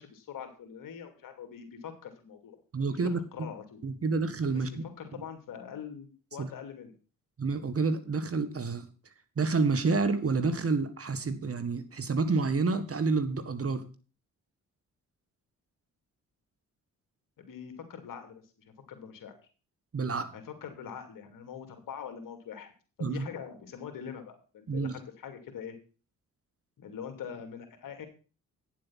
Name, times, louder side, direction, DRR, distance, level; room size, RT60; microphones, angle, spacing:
voice 1, 0.0-2.6 2.9-3.8 4.5-6.9 17.4-18.4 18.9-19.4 20.3-22.7 23.0-25.8 26.8-28.1, left 7 dB, 70° left, 6 dB, 2.6 m, -43 dB
voice 2, 2.7-3.5 3.8-4.8 6.4-6.5 7.4-8.8 9.4-13.9 19.9-20.3 23.0-23.3 24.7-24.9, right 4 dB, 40° right, 11 dB, 1.7 m, -29 dB
9.4 x 7.5 x 5.8 m, 0.36 s
supercardioid pair, 55°, 34 cm